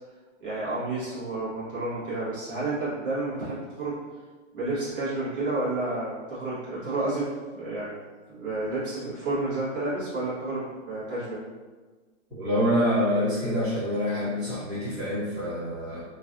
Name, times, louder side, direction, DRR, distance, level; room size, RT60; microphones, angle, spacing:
voice 1, 0.4-4.0 4.5-7.9 8.3-11.4, right 2 dB, 45° right, -10 dB, 1.4 m, -30 dB
voice 2, 12.4-16.0, equal, 5° right, -20 dB, 1.0 m, -26 dB
3.1 x 2.3 x 2.5 m, 1.4 s
hypercardioid pair, 175°, 38 cm